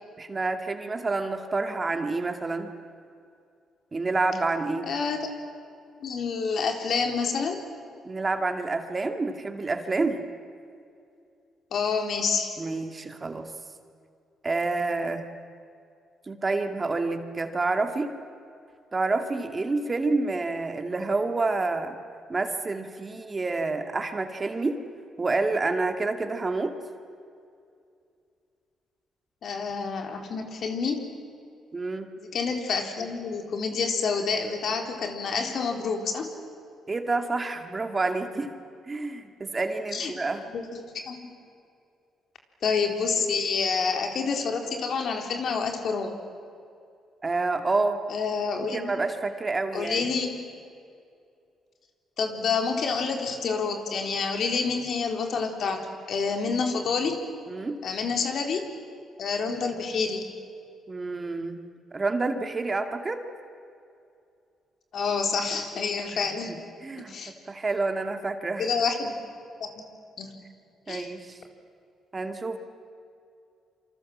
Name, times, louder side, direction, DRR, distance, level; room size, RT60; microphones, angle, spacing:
voice 1, 0.2-2.7 3.9-4.9 8.0-10.2 12.6-13.5 14.4-15.3 16.3-18.2 18.9-22.0 22.3-24.8 25.2-26.7 31.7-32.1 36.9-38.6 38.9-40.4 47.2-48.0 48.7-50.1 57.5-57.9 60.9-61.7 61.9-63.2 66.5-67.1 67.5-68.7 70.9-71.4 72.1-72.6, right 3 dB, 30° right, 6 dB, 2.4 m, -28 dB
voice 2, 4.8-5.3 6.0-7.6 11.7-12.6 29.4-31.0 32.2-36.3 39.9-40.1 40.5-40.8 41.1-41.2 42.6-46.1 48.1-48.9 49.7-50.3 52.2-57.2 57.8-58.7 59.2-60.2 64.9-66.5 67.1-67.3 68.6-69.1 69.6-69.9 70.2-70.3 70.9-71.1, left 5 dB, 60° left, 4 dB, 3.9 m, -28 dB
27.5 x 26.0 x 7.5 m, 2.4 s
cardioid pair, 90°, 0 cm